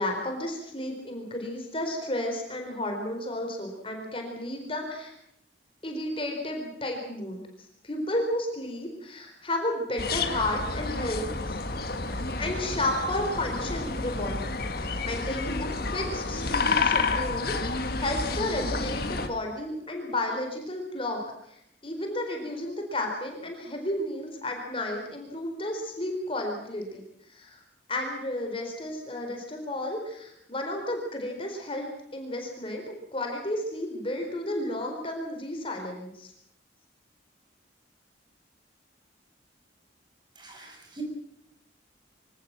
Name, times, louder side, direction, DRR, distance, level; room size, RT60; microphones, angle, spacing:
voice 1, 0.0-5.1 5.8-7.4 7.8-11.6 12.4-21.2 21.5-27.0 27.3-27.6 27.9-36.3, left 1 dB, 30° left, 2 dB, 4.3 m, -32 dB
sound 1, 10.0-19.3, left 3 dB, 55° left, 1.9 m, -30 dB
voice 2, 40.4-41.0, right 3 dB, 25° right, 2 dB, 6.0 m, -44 dB
25.0 x 18.5 x 7.5 m, 0.77 s
head